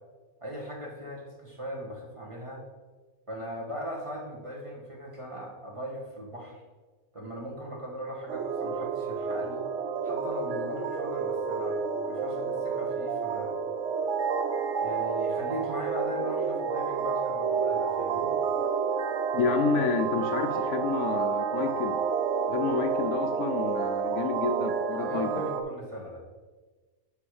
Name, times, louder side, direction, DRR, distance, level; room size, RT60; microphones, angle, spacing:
voice 1, 0.4-2.6 3.3-6.6 7.1-9.6 10.0-11.8 12.0-13.6 14.8-18.3 24.9-26.2, equal, 20° right, -2 dB, 1.3 m, -38 dB
sound 1, 8.3-25.6, right 6 dB, 65° right, 0.9 m, -30 dB
voice 2, 19.3-22.0 22.5-25.3, left 5 dB, 70° left, 7 dB, 1.0 m, -29 dB
6.9 x 5.4 x 4.8 m, 1.3 s
omnidirectional pair, 1.5 m